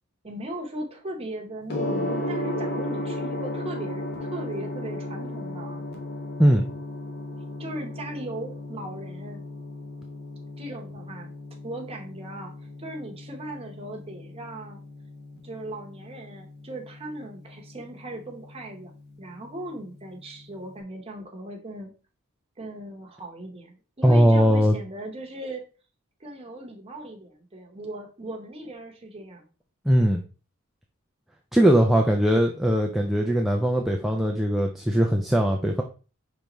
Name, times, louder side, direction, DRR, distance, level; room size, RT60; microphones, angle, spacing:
voice 1, 0.2-5.8 7.6-9.4 10.6-11.3 11.6-12.5 12.8-14.8 15.4-18.9 19.2-21.9 22.6-25.6 26.2-29.5, right 1 dB, 25° right, 1 dB, 0.9 m, -38 dB
Gong, 1.7-20.7, left 1 dB, 50° left, 0.9 m, -35 dB
voice 2, 24.0-24.8 29.9-30.2 31.5-35.8, equal, ahead, 1 dB, 0.3 m, -20 dB
5.2 x 3.4 x 3.0 m, 0.35 s
head